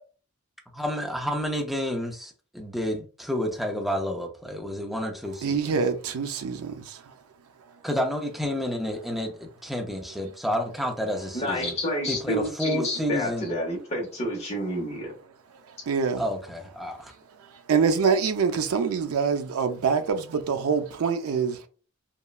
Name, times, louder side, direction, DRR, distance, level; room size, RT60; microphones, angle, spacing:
voice 1, 0.7-5.8 7.8-11.8 12.1-13.5 16.2-17.1, equal, ahead, 0.5 m, -30 dB
voice 2, 5.4-7.0 15.9-16.2 17.7-21.6, right 5 dB, 80° right, 0.4 m, -25 dB
voice 3, 11.3-15.1, equal, 30° left, 0.8 m, -29 dB
3.0 x 2.2 x 2.3 m
head